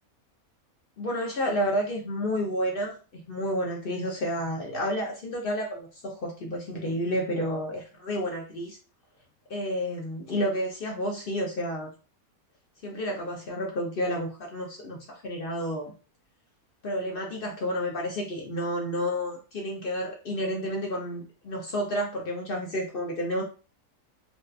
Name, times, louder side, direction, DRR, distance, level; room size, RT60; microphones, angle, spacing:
voice 1, 1.0-8.8 9.5-11.9 12.8-15.9 16.8-23.4, equal, 65° left, 0 dB, 0.5 m, -30 dB
3.9 x 2.3 x 2.3 m, 0.35 s
omnidirectional pair, 1.6 m